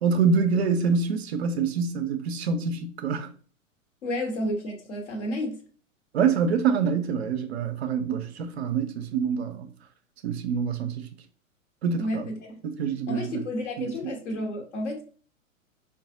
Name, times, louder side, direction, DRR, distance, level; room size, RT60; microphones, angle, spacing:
voice 1, 0.0-3.3 6.1-9.7 10.2-11.1 11.8-12.3 12.6-13.4 13.8-13.9, right 5 dB, 50° right, 0.5 m, -26 dB
voice 2, 4.0-5.6 12.0-12.6 13.1-15.0, left 1 dB, 60° left, 1.1 m, -31 dB
4.7 x 2.4 x 2.4 m
figure-of-eight pair, 100°, 41 cm